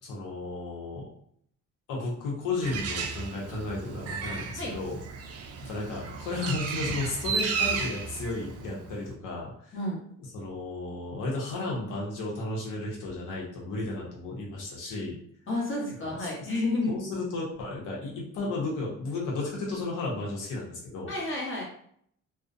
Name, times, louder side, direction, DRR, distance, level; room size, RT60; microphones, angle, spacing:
voice 1, 0.0-1.1 1.9-5.0 5.6-9.7 10.3-15.2 16.0-16.5 16.9-21.1, left 2 dB, 90° left, -2 dB, 0.9 m, -33 dB
Bird, 2.6-9.1, right 5 dB, 55° right, 0.4 m, -34 dB
voice 2, 15.5-16.9 21.1-21.6, left 2 dB, 40° left, -3 dB, 1.1 m, -30 dB
2.4 x 2.1 x 2.5 m, 0.66 s
cardioid pair, 90°, 30 cm